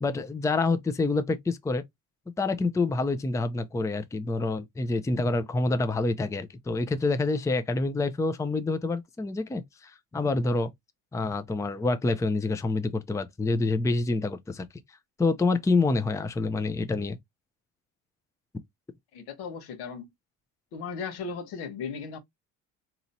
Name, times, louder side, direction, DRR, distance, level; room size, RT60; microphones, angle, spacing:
voice 1, 0.0-1.8 2.4-10.7 11.1-14.7 15.2-17.2, left 3 dB, 10° left, 0.5 m, -27 dB
voice 2, 19.1-20.1 20.7-22.2, left 5 dB, 80° left, 1.3 m, -36 dB
3.8 x 3.0 x 2.7 m
supercardioid pair, 85°, 38 cm